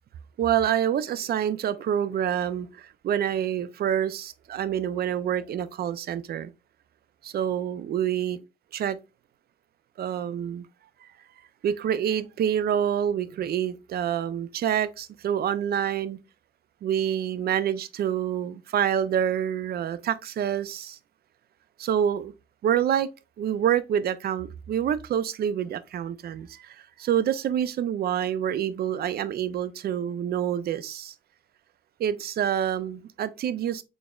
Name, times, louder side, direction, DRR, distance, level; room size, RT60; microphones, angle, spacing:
voice 1, 0.4-6.5 7.2-8.4 8.7-9.0 10.0-10.7 11.0-11.1 11.6-16.2 16.8-21.0 21.8-22.3 22.6-23.1 23.4-31.1 32.0-33.8, right 9 dB, 50° right, 0.4 m, -27 dB
4.2 x 3.3 x 2.3 m
cardioid pair, 90°, 20 cm